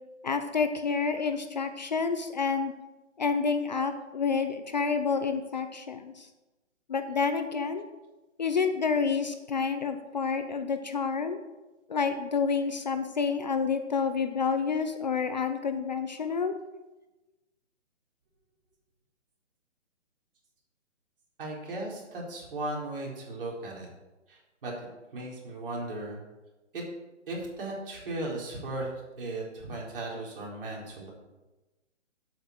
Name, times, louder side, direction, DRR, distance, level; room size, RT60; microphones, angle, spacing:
voice 1, 0.2-2.7 3.2-6.3 6.9-7.8 8.4-11.4 11.9-16.5, left 5 dB, 35° left, 8 dB, 0.7 m, -29 dB
voice 2, 21.4-23.9 24.3-24.7 25.1-26.2 26.7-26.8 27.3-28.9 29.2-31.1, right 2 dB, 50° right, -3 dB, 4.4 m, -36 dB
9.0 x 8.2 x 6.7 m, 1.1 s
hypercardioid pair, 165°, 36 cm